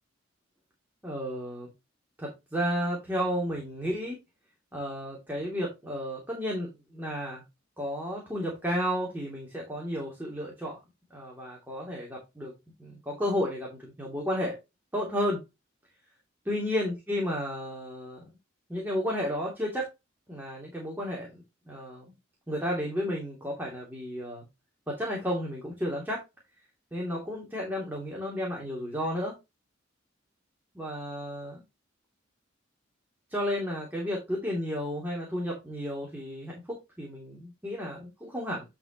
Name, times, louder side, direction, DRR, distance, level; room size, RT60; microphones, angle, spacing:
voice 1, 1.0-1.7 2.2-4.2 4.7-7.4 7.8-10.8 11.1-12.5 12.8-14.5 14.9-15.4 16.4-18.3 18.7-19.9 20.3-22.1 22.5-24.4 24.9-26.2 26.9-29.3 30.7-31.6 33.3-38.6, equal, 10° right, -3 dB, 2.9 m, -32 dB
10.5 x 5.1 x 3.1 m, 0.22 s
head